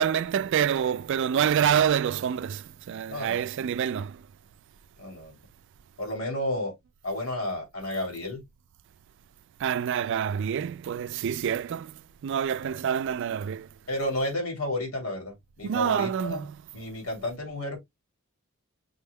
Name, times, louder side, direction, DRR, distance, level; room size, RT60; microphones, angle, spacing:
voice 1, 0.0-4.2 9.6-13.7 15.6-16.5, right 8 dB, 60° right, 0.3 m, -27 dB
voice 2, 3.1-3.4 5.0-5.4 6.0-6.7 7.0-8.4 12.5-12.8 13.9-16.4 16.7-17.8, left 1 dB, 85° left, 2.9 m, -32 dB
6.2 x 2.2 x 3.4 m
head